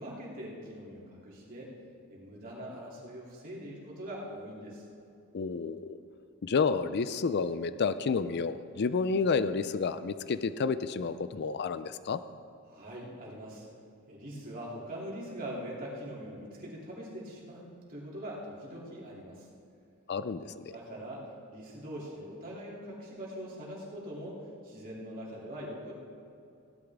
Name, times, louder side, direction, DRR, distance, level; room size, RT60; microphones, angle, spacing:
voice 1, 0.0-1.7 2.1-4.8 12.7-13.6 14.1-19.5 20.7-25.9, equal, 45° right, -5 dB, 2.9 m, -42 dB
voice 2, 5.3-6.0 6.4-12.2 20.1-20.7, left 5 dB, 50° left, 13 dB, 0.4 m, -30 dB
16.5 x 12.0 x 3.6 m, 2.5 s
head